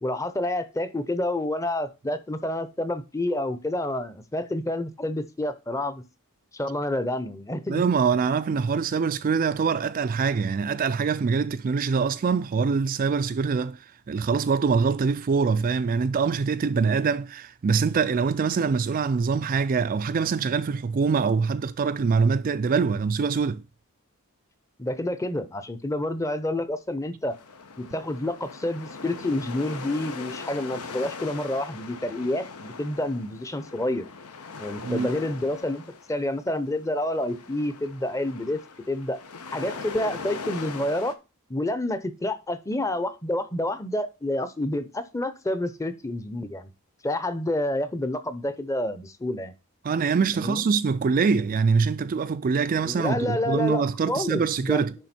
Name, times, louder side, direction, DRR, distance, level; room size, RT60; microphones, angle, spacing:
voice 1, 0.0-6.0 6.5-7.8 24.8-27.4 27.8-34.1 34.6-35.8 36.1-38.6 38.9-39.2 39.5-41.2 41.5-46.7 47.0-49.5 50.4-50.6 52.8-54.9, left 1 dB, 15° left, 0.7 m, -28 dB
voice 2, 7.7-23.6 34.8-35.1 49.8-54.9, right 5 dB, 40° right, 0.3 m, -24 dB
sound 1, 27.3-41.1, left 4 dB, 85° left, 1.0 m, -40 dB
10.5 x 3.6 x 4.3 m
head